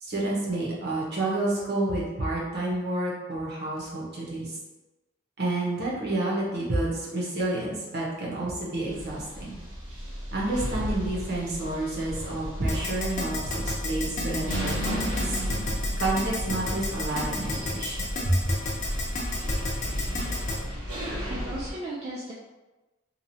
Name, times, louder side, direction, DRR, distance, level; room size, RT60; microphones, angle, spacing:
voice 1, 0.0-4.5 5.4-9.6 10.3-15.4 16.0-18.5, right 2 dB, 55° right, -5 dB, 0.9 m, -29 dB
sound 1, 8.9-21.7, equal, 80° right, 1.3 m, -33 dB
Keyboard (musical), 12.7-20.5, left 3 dB, 40° left, 0.7 m, -31 dB
voice 2, 21.2-22.3, right 1 dB, 30° right, -6 dB, 0.4 m, -36 dB
3.0 x 2.3 x 2.7 m, 1.1 s
head